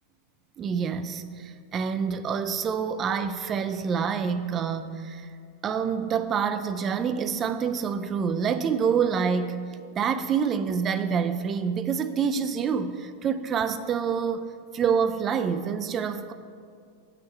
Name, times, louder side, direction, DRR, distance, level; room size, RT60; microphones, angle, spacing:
voice 1, 0.6-5.3 5.6-9.6 10.0-14.5 14.7-16.3, right 6 dB, 25° right, 11 dB, 0.3 m, -27 dB
6.9 x 4.3 x 4.5 m, 2.3 s
figure-of-eight pair, 90°, 0 cm